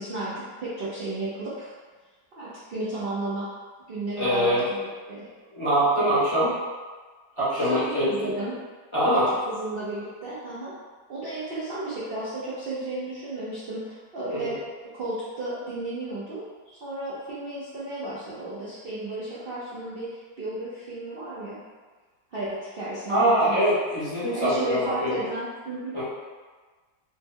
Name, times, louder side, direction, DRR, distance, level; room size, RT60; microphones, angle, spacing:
voice 1, 0.0-1.7 2.3-3.5 3.9-5.3 7.6-8.6 9.3-10.7 11.1-14.6 14.9-16.4 16.8-21.6 22.3-23.5 24.3-26.0, right 2 dB, 60° right, -9 dB, 0.5 m, -33 dB
voice 2, 4.2-4.6 5.5-6.5 7.4-8.1 8.9-9.3 14.3-14.5 23.1-25.1 25.9-26.0, right 1 dB, 25° left, -12 dB, 0.9 m, -23 dB
3.1 x 2.0 x 3.6 m, 1.4 s
omnidirectional pair, 1.8 m